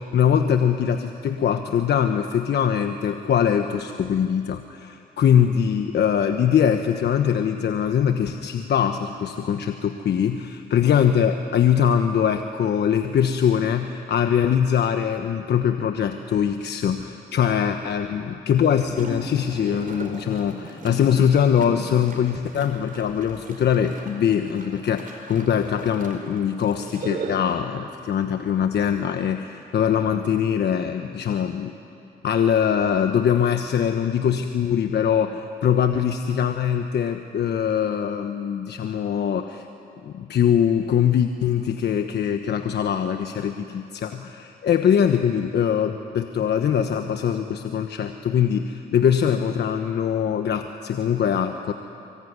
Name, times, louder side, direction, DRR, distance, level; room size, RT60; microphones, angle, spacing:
voice 1, 0.0-31.7 32.2-39.7 40.0-51.7, left 8 dB, 65° left, 7 dB, 1.2 m, -22 dB
sound 1, 18.7-27.6, right 3 dB, 50° right, 4.6 m, -38 dB
24.5 x 23.0 x 9.6 m, 2.7 s
cardioid pair, 70°, 19 cm